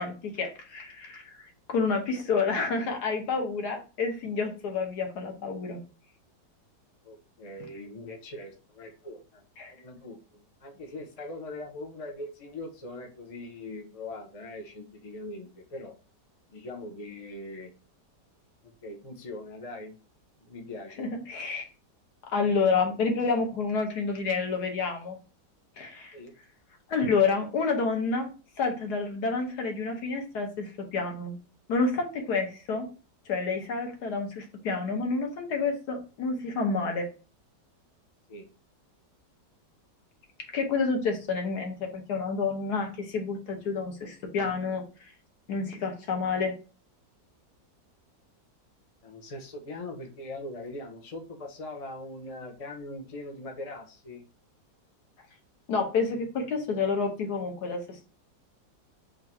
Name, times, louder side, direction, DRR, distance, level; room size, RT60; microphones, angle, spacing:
voice 1, 0.0-5.8 9.6-9.7 21.0-21.6 22.3-25.2 25.8-26.2 26.9-28.3 28.6-31.4 31.7-32.9 33.3-37.1 40.5-44.8 45.5-46.5 55.7-58.1, left 4 dB, 70° left, 3 dB, 1.4 m, -29 dB
voice 2, 7.0-9.4 9.7-15.9 16.5-17.7 18.8-20.0 20.4-21.1 26.1-26.3 38.3-38.5 49.0-54.2, left 2 dB, 50° left, 2 dB, 0.4 m, -41 dB
3.7 x 2.6 x 4.3 m, 0.35 s
omnidirectional pair, 1.9 m